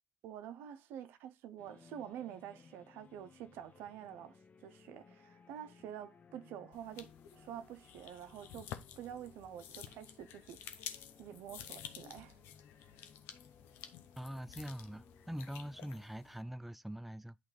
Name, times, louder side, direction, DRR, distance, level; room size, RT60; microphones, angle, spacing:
voice 1, 0.2-8.7 9.0-12.4, right 10 dB, 85° right, 0.5 m, -48 dB
sound 1, 1.6-16.1, left 6 dB, 45° left, 0.7 m, -62 dB
sound 2, 6.7-16.4, left 10 dB, 90° left, 0.6 m, -51 dB
voice 2, 14.2-17.4, equal, 5° right, 0.3 m, -43 dB
8.7 x 3.0 x 3.9 m
supercardioid pair, 65°, 4 cm